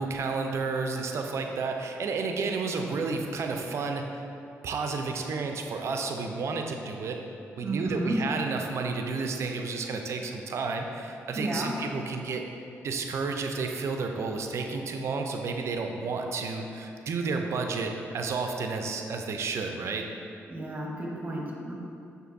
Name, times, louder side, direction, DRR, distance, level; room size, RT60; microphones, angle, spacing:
voice 1, 0.0-4.0 4.6-7.2 7.6-12.4 12.8-20.0, right 4 dB, 60° right, 4 dB, 0.4 m, -31 dB
voice 2, 7.6-8.2 11.3-11.7 20.5-21.7, right 2 dB, 30° right, -2 dB, 0.9 m, -32 dB
6.3 x 2.6 x 2.5 m, 2.6 s
supercardioid pair, 60°, 5 cm